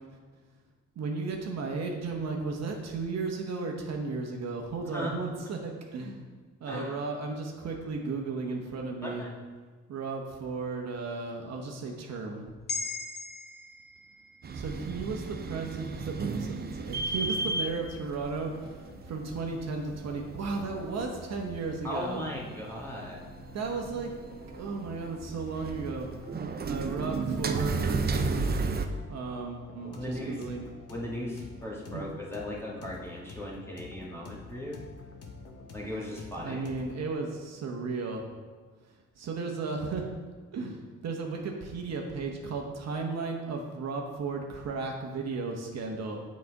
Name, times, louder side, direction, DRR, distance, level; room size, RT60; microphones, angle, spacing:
voice 1, 1.0-6.3 6.6-9.2 9.9-12.5 14.5-18.8 19.0-22.3 23.5-24.1 24.5-26.1 26.6-28.1 29.1-30.7 31.9-32.0 36.4-38.3 39.2-40.1 40.5-46.2, right 4 dB, 60° right, 2 dB, 1.1 m, -35 dB
voice 2, 6.7-7.0 9.0-9.3 21.8-23.3 29.9-30.5 30.9-34.8 35.7-36.6, left 1 dB, 10° left, -4 dB, 1.7 m, -37 dB
sound 1, 12.7-17.2 17.6-17.7, left 4 dB, 35° left, 0.9 m, -42 dB
sound 2, 14.4-28.9, right 3 dB, 30° right, 0.6 m, -34 dB
sound 3, 18.4-37.0, left 3 dB, 55° left, 1.1 m, -49 dB
7.6 x 4.2 x 4.7 m, 1.4 s
cardioid pair, 90°, 30 cm